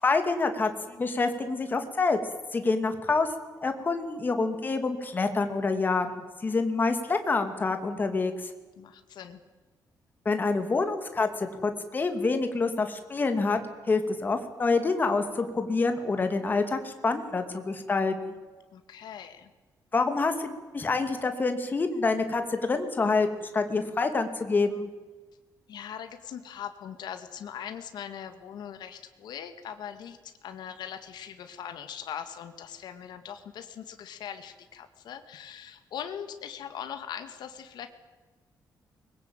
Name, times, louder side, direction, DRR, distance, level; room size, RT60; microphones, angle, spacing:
voice 1, 0.0-2.2 2.5-3.3 3.6-8.5 10.2-13.6 13.9-18.4 19.9-24.9, left 3 dB, 25° left, 7 dB, 2.5 m, -27 dB
voice 2, 8.8-9.4 18.7-19.5 25.7-37.9, left 9 dB, 80° left, 8 dB, 2.0 m, -41 dB
23.5 x 21.5 x 9.0 m, 1.3 s
wide cardioid pair, 160°, 7 cm